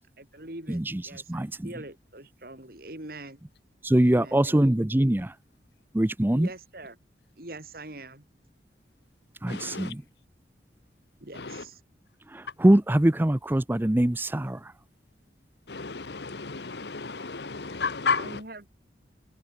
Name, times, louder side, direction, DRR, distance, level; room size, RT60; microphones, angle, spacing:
voice 1, 0.2-3.4 4.0-4.6 6.3-7.0 7.4-8.2 11.2-11.8 18.1-18.7, right 2 dB, 55° right, 4.1 m, -43 dB
voice 2, 0.7-1.7 3.8-5.4 5.9-6.5 9.4-10.0 12.3-14.7, right 1 dB, 10° right, 0.5 m, -23 dB
voice 3, 9.5-9.9 11.3-11.7 15.7-18.4, left 4 dB, 70° left, 1.2 m, -32 dB
head